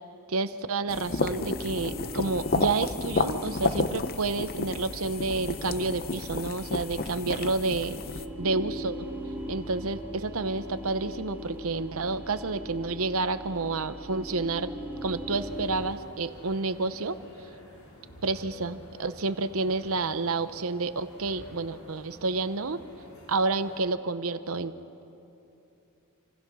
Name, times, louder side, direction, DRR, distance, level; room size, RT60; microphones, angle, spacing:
voice 1, 0.3-8.0 8.4-8.9 9.5-14.7 15.0-17.2 18.2-22.8 23.3-24.7, right 3 dB, 75° right, 11 dB, 0.9 m, -29 dB
sound 1, 0.9-8.3, left 3 dB, 45° left, 0.7 m, -31 dB
sound 2, 1.4-16.0, equal, 10° right, 2.2 m, -40 dB
sound 3, 15.3-23.8, left 1 dB, 75° left, 5.7 m, -50 dB
28.0 x 26.0 x 6.2 m, 2.9 s
head